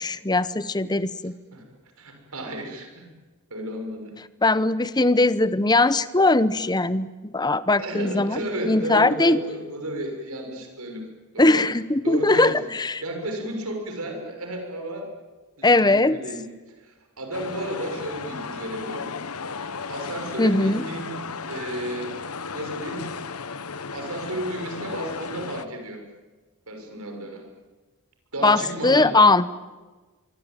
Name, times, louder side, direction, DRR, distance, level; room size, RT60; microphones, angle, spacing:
voice 1, 0.0-1.3 4.4-9.4 11.4-13.0 15.6-16.2 20.4-20.8 28.4-29.4, left 2 dB, 20° left, 15 dB, 0.9 m, -20 dB
voice 2, 2.0-3.1 3.5-4.1 7.8-11.1 11.3-11.6 12.0-12.6 13.0-15.1 15.6-16.4 16.8-19.1 19.9-22.1 22.5-23.0 23.9-26.0 26.7-27.4 28.3-29.1, right 1 dB, 85° right, 3 dB, 6.4 m, -33 dB
sound 1, 17.3-25.7, left 5 dB, 85° left, 1.3 m, -35 dB
25.0 x 24.5 x 9.1 m, 1.3 s
head